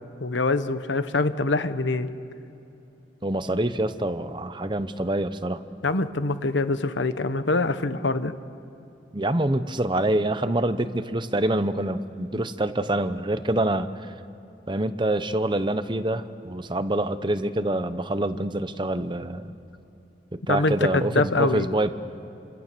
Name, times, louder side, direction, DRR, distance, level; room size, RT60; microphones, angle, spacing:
voice 1, 0.2-2.1 5.8-8.3 20.5-21.7, left 3 dB, 85° left, 11 dB, 1.1 m, -24 dB
voice 2, 3.2-5.6 9.1-14.1 14.7-19.5 20.3-21.9, right 1 dB, 25° right, 11 dB, 0.9 m, -26 dB
28.5 x 26.0 x 6.9 m, 2.8 s
head